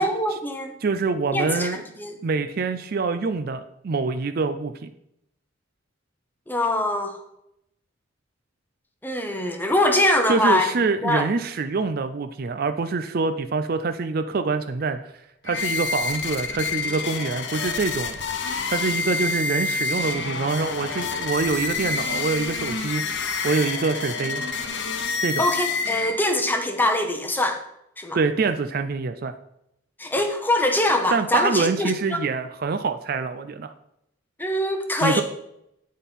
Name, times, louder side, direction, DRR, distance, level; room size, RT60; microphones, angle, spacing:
voice 1, 0.0-0.7 1.3-2.1 6.5-7.2 9.0-10.7 11.0-11.3 25.4-27.6 28.0-28.2 30.0-32.2 34.4-35.2, left 1 dB, 10° left, 5 dB, 0.8 m, -23 dB
voice 2, 0.8-1.8 2.2-4.9 10.3-15.0 15.4-18.2 18.7-23.0 23.4-24.4 25.2-25.5 28.1-29.3 31.1-33.7 35.0-35.2, right 4 dB, 45° right, 9 dB, 0.4 m, -25 dB
sound 1, 15.5-26.5, left 4 dB, 60° left, 0.8 m, -28 dB
9.2 x 4.3 x 5.2 m, 0.79 s
head